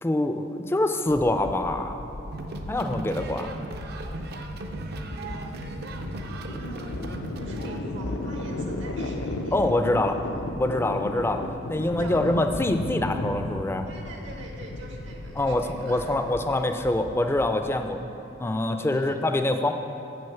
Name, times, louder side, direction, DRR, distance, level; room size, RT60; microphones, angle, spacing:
voice 1, 0.0-2.1 2.7-3.5 9.5-10.2 10.6-11.4 11.7-13.9 15.4-18.0 18.4-19.7, left 1 dB, 15° left, 7 dB, 0.4 m, -25 dB
sound 1, 1.1-18.1, left 2 dB, 75° left, 0.5 m, -35 dB
sound 2, 2.3-7.8, right 2 dB, 60° right, 0.5 m, -37 dB
voice 2, 3.0-3.5 4.9-5.6 6.6-7.0 7.4-9.6 10.0-10.5 11.9-12.3 13.8-16.2 18.8-19.2, right 1 dB, 80° right, 0 dB, 1.3 m, -44 dB
7.4 x 6.3 x 5.8 m, 2.9 s
head